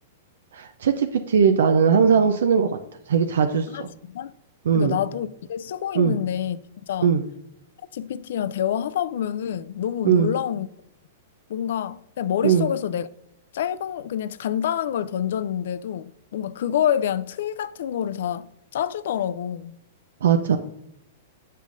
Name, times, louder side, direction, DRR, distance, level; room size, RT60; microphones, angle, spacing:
voice 1, 0.5-2.7 3.1-3.7 4.7-5.0 6.0-6.2 7.0-7.2 10.0-10.3 12.4-12.7 20.2-20.6, right 6 dB, 80° right, 0.4 m, -19 dB
voice 2, 3.7-4.3 4.7-6.6 6.9-7.1 7.9-10.7 11.5-13.1 13.5-19.8, left 9 dB, 70° left, 0.3 m, -27 dB
7.4 x 5.4 x 2.5 m
hypercardioid pair, 150°, 0 cm